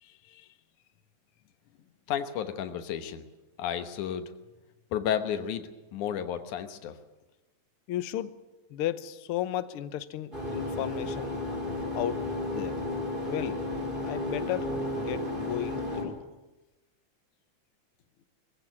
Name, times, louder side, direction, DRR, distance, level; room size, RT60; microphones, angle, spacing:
voice 1, 0.0-0.5 7.9-8.3 8.7-11.4 11.9-12.2 12.5-12.8 13.3-13.6 14.0-16.2, left 12 dB, 65° left, 13 dB, 1.4 m, -34 dB
voice 2, 2.1-3.2 3.6-4.3 4.9-7.0, left 9 dB, 90° left, 9 dB, 2.7 m, -32 dB
sound 1, 10.3-16.0, left 2 dB, 15° right, 5.4 m, -33 dB
21.0 x 15.5 x 9.7 m, 1.1 s
omnidirectional pair, 3.4 m